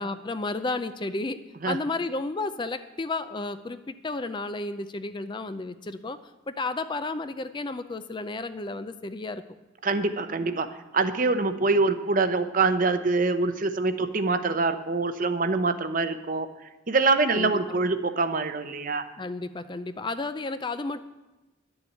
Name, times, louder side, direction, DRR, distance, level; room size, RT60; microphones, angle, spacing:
voice 1, 0.0-6.2 6.5-9.4 17.3-17.8 19.2-21.0, left 3 dB, 25° left, 11 dB, 0.4 m, -32 dB
voice 2, 9.8-16.5 16.9-19.0, right 3 dB, 45° right, 10 dB, 0.7 m, -25 dB
11.0 x 7.1 x 9.1 m, 1.1 s
head